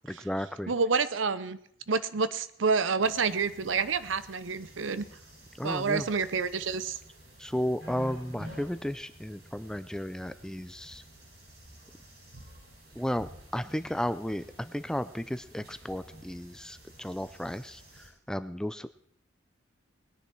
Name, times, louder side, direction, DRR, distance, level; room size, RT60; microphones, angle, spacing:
voice 1, 0.1-0.7 5.6-6.1 7.4-11.0 13.0-18.9, equal, 5° left, 12 dB, 0.4 m, -34 dB
voice 2, 0.7-1.6 1.9-5.1 5.6-7.0, right 5 dB, 85° right, 15 dB, 0.7 m, -28 dB
sound 1, 3.0-18.1, equal, 60° right, 6.6 m, -51 dB
20.5 x 10.0 x 4.6 m, 0.67 s
head